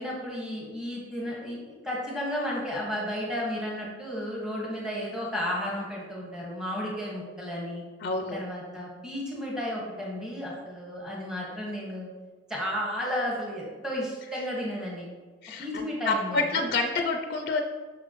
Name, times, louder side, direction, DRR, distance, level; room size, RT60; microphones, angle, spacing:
voice 1, 0.0-7.8 8.3-12.1 12.5-15.1 15.6-16.6, equal, 5° right, -5 dB, 1.5 m, -33 dB
voice 2, 8.0-8.4 15.4-17.6, left 3 dB, 50° left, 5 dB, 0.5 m, -28 dB
7.4 x 6.3 x 3.0 m, 1.3 s
head